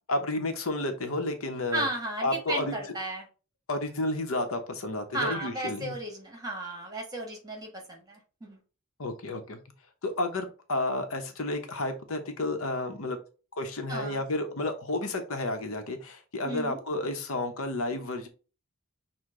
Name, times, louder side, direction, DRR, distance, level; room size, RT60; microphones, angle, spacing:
voice 1, 0.1-1.9 2.2-3.0 3.7-5.9 9.0-9.6 10.0-13.2 13.5-18.3, left 2 dB, 70° left, 6 dB, 0.8 m, -31 dB
voice 2, 1.7-3.2 5.1-8.6 13.9-14.2 16.4-16.8, right 1 dB, 15° right, 2 dB, 1.3 m, -34 dB
6.4 x 2.2 x 3.7 m, 0.35 s
head